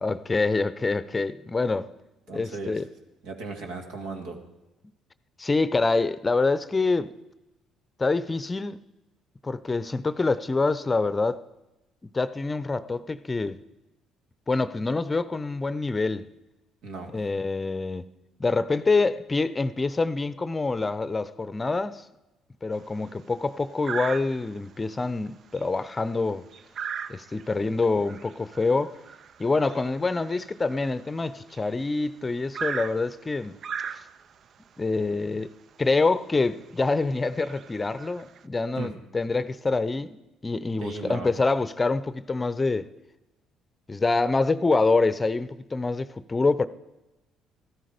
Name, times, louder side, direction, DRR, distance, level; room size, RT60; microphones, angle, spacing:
voice 1, 0.0-1.9 2.3-2.9 5.4-7.1 8.0-8.8 9.4-11.4 12.1-13.6 14.5-16.3 17.1-18.1 18.4-22.0 22.6-26.5 27.1-28.9 29.4-33.6 33.9-34.0 34.8-35.5 35.8-40.2 40.4-42.9 43.9-46.7, left 3 dB, 25° left, 0.7 m, -26 dB
voice 2, 2.3-2.8 3.2-4.4 16.8-17.1 38.8-38.9 40.8-41.3, right 3 dB, 75° right, 2.1 m, -36 dB
sound 1, 22.7-23.1 23.8-24.7 25.1-25.3 25.5-31.8 32.5-34.4 35.4-35.5 35.9-36.0 36.6-36.8 37.3-38.4, right 7 dB, 55° right, 0.5 m, -38 dB
14.0 x 12.5 x 5.1 m
hypercardioid pair, 55°, 0 cm